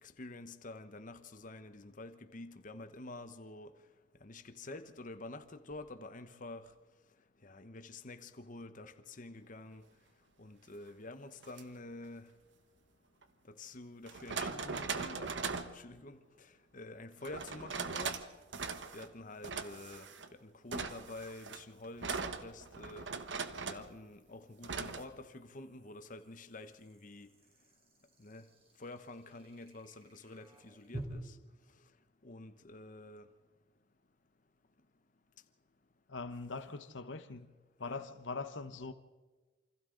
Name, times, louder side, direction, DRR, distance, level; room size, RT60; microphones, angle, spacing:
voice 1, 0.0-3.7 4.2-6.7 7.4-9.8 10.4-12.3 13.6-15.3 15.7-18.1 18.9-20.1 20.4-23.1 23.5-27.3 28.2-28.5 28.8-31.3 32.2-33.3 37.8-38.0, left 2 dB, 45° left, 1.0 m, -48 dB
sound 1, 11.4-11.6 13.2-13.3 14.1-15.8 17.2-18.3 18.5-19.1 19.4-20.3 20.7-23.9 24.6-25.0, right 5 dB, 65° right, 1.2 m, -40 dB
sound 2, 17.4-17.5 20.9-31.0, right 1 dB, 30° right, 3.8 m, -55 dB
voice 2, 36.1-37.5 37.8-38.9, left 4 dB, 75° left, 1.0 m, -42 dB
28.0 x 25.5 x 3.9 m
head